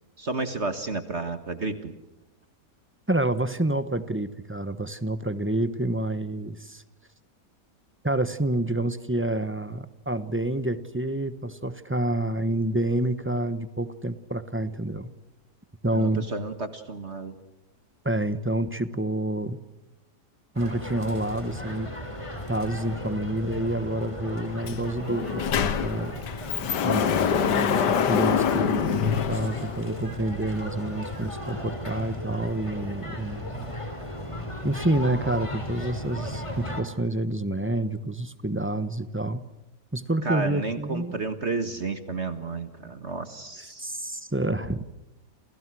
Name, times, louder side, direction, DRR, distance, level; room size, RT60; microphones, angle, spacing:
voice 1, 0.2-2.0 15.9-17.4 40.2-43.9, right 3 dB, 40° right, 9 dB, 1.8 m, -32 dB
voice 2, 3.1-6.8 8.0-15.1 15.8-16.3 18.0-19.6 20.5-21.9 22.5-26.2 26.8-33.7 34.6-39.4 39.9-41.2 43.8-44.8, right 1 dB, 10° right, 12 dB, 0.9 m, -28 dB
sound 1, 20.6-36.8, left 1 dB, 15° left, 4.1 m, -36 dB
Sliding door, 24.7-24.8 25.1-30.1, left 8 dB, 80° left, 1.8 m, -25 dB
30.0 x 29.0 x 6.3 m, 0.95 s
omnidirectional pair, 1.8 m